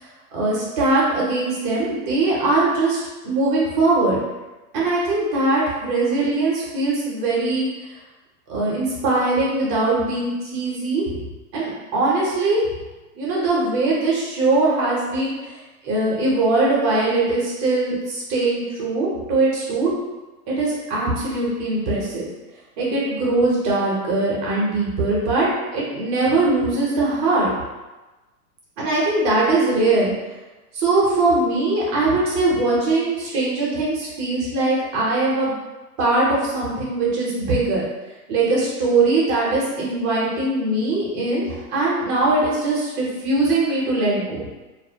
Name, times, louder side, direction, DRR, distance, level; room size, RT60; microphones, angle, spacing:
voice 1, 0.3-3.0 3.2-4.2 4.7-7.7 8.5-11.1 11.5-12.6 13.2-15.4 15.8-19.9 20.5-22.2 22.8-25.5 25.7-27.5 28.8-30.1 30.7-35.5 36.0-37.8 38.3-44.4, right 2 dB, 25° right, -5 dB, 0.6 m, -21 dB
2.4 x 2.0 x 2.7 m, 1.1 s
hypercardioid pair, 140°, 46 cm